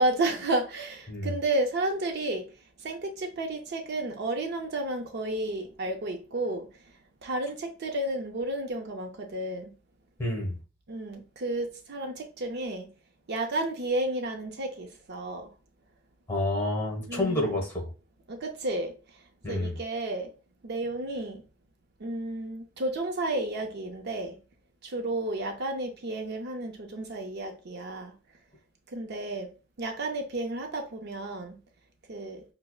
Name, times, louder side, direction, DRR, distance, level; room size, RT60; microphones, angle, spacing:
voice 1, 0.0-2.5 2.8-6.7 7.2-9.7 10.9-12.9 13.3-15.5 17.1-17.5 18.3-19.2 19.5-20.3 20.6-21.4 22.0-24.4 24.8-28.1 28.9-29.5 29.8-31.6 32.1-32.4, right 2 dB, 55° right, 0.5 m, -32 dB
voice 2, 10.2-10.6 16.3-17.9 19.4-19.7, left 1 dB, 15° left, 1.2 m, -29 dB
5.5 x 2.0 x 2.3 m
head